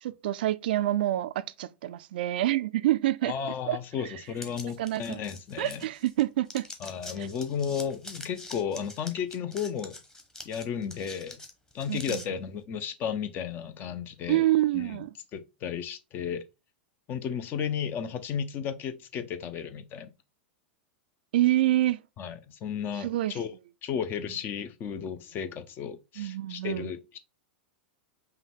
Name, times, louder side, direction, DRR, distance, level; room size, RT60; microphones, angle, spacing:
voice 1, 0.0-3.3 3.7-3.8 4.8-5.2 5.6-6.7 7.2-7.3 11.9-12.2 14.3-15.1 21.3-22.0 23.0-23.4 26.2-26.9, right 14 dB, 65° right, 0.3 m, -27 dB
voice 2, 3.2-5.8 6.8-10.0 10.5-11.4 11.7-14.4 14.7-15.0 15.3-16.4 17.1-20.1 22.2-23.5 23.8-27.2, left 7 dB, 35° left, 0.6 m, -34 dB
sound 1, 4.4-6.2 6.5-12.3, left 2 dB, 10° left, 1.0 m, -44 dB
5.6 x 2.3 x 3.4 m
hypercardioid pair, 100°, 6 cm